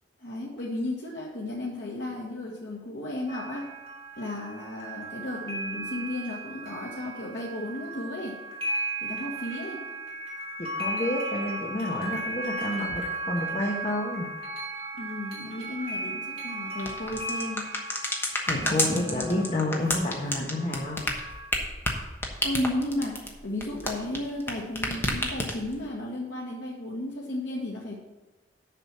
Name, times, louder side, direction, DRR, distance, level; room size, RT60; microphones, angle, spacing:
voice 1, 0.2-3.7 4.2-8.3 9.0-9.8 15.0-17.6 18.6-19.2 22.4-28.0, left 1 dB, 85° left, -4 dB, 1.5 m, -34 dB
sound 1, 3.3-21.5, right 2 dB, 30° right, 3.1 m, -36 dB
voice 2, 10.6-14.3 18.5-21.0, left 1 dB, 40° left, -2 dB, 1.2 m, -29 dB
sound 2, 16.8-24.5 24.8-25.8, left 1 dB, 15° left, 1.2 m, -29 dB
6.8 x 6.1 x 7.2 m, 1.1 s
head